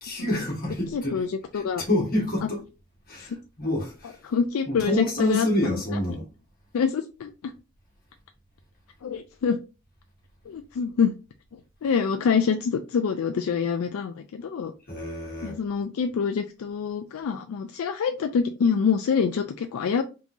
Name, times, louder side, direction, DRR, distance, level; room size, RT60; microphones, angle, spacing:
voice 1, 0.0-1.2 1.5-2.6 3.1-4.2 4.7-6.2 14.9-15.6, left 1 dB, 40° left, 1.4 m, -28 dB
voice 2, 0.9-1.8 3.2-3.3 4.2-5.8 6.7-7.5 9.0-9.6 10.5-11.2 11.8-14.7 15.4-20.0, left 6 dB, 75° left, 0.3 m, -26 dB
3.6 x 2.9 x 2.6 m
head